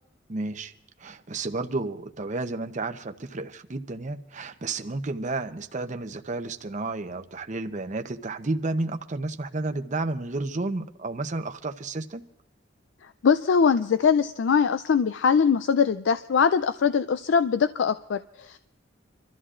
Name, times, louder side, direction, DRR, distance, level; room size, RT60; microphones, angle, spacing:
voice 1, 0.3-0.7 1.0-12.2, right 2 dB, 40° right, 8 dB, 0.8 m, -31 dB
voice 2, 13.2-18.6, left 6 dB, 70° left, 12 dB, 0.4 m, -22 dB
27.0 x 13.5 x 2.5 m, 0.93 s
head